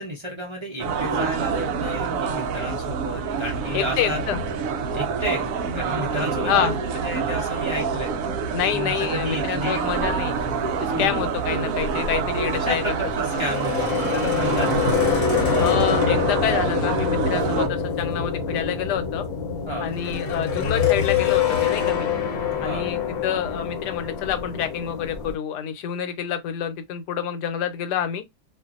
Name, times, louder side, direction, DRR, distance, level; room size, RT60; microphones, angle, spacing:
voice 1, 0.0-4.2 4.9-8.1 8.7-9.8 10.9-11.2 12.5-14.7 19.7-19.9 22.5-22.9, equal, 30° right, 0.5 m, -32 dB
sound 1, 0.8-17.7, right 5 dB, 70° right, 0.8 m, -27 dB
voice 2, 3.7-4.4 6.5-6.8 8.5-10.3 10.8-12.8 15.6-19.2 19.8-22.1 22.6-28.2, left 9 dB, 85° left, 1.2 m, -27 dB
sound 2, 9.8-12.4 12.7-12.8 13.1-25.3, left 6 dB, 50° left, 1.0 m, -25 dB
2.5 x 2.5 x 2.5 m
omnidirectional pair, 1.7 m